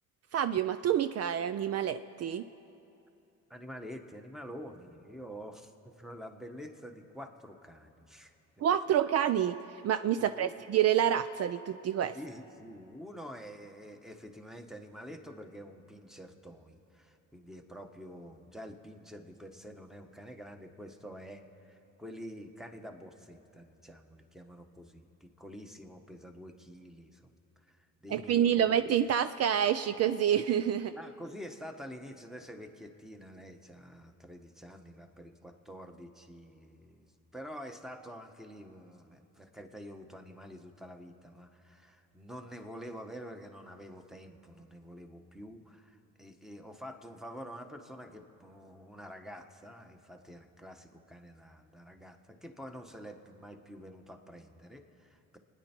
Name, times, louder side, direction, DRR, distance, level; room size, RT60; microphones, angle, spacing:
voice 1, 0.3-2.4 8.6-9.6 9.8-12.2 28.1-30.9, right 9 dB, 55° right, 12 dB, 0.5 m, -28 dB
voice 2, 3.5-8.3 10.2-10.5 12.1-27.3 27.6-28.7 30.9-55.4, equal, ahead, 5 dB, 1.3 m, -47 dB
28.5 x 10.0 x 4.5 m, 2.9 s
cardioid pair, 90°, 30 cm